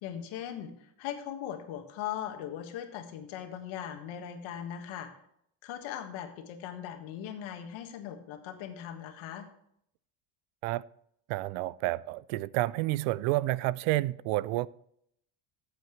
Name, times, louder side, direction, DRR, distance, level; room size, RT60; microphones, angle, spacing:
voice 1, 0.0-5.1 5.6-9.5, left 10 dB, 70° left, 1.7 m, -39 dB
voice 2, 11.3-14.7, right 18 dB, 80° right, 0.5 m, -29 dB
14.0 x 8.1 x 3.2 m
cardioid pair, 160°, 50 cm